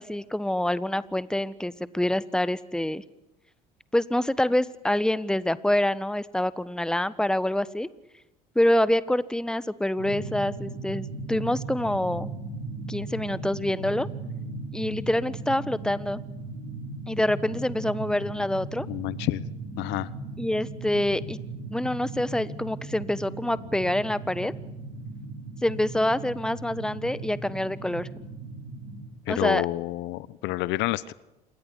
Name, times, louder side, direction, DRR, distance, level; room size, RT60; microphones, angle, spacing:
voice 1, 0.0-3.0 3.9-7.9 8.5-12.3 12.9-14.1 14.7-16.2 17.1-18.9 20.4-21.4 21.7-24.5 25.6-28.1 29.3-29.7, left 1 dB, 5° left, 16 dB, 1.4 m, -26 dB
sound 1, 10.0-29.1, right 2 dB, 85° right, 5.3 m, -37 dB
voice 2, 18.9-19.4 19.8-20.1 29.3-31.1, left 18 dB, 65° left, 19 dB, 1.0 m, -28 dB
28.5 x 21.0 x 9.8 m, 0.92 s
hypercardioid pair, 65°, 19 cm